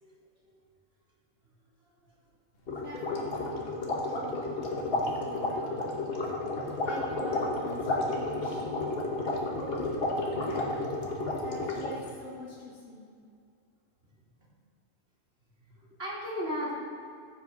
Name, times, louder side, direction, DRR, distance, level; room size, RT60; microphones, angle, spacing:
sound 1, 2.7-12.1, left 2 dB, 45° left, 1.3 m, -32 dB
voice 1, 2.8-6.0 6.8-8.8 9.5-9.9 10.1-10.9 11.4-13.1, left 1 dB, 65° left, -8 dB, 2.0 m, -44 dB
voice 2, 15.6-16.7, equal, 45° right, -7 dB, 2.9 m, -37 dB
14.5 x 5.4 x 4.0 m, 2.3 s
omnidirectional pair, 1.4 m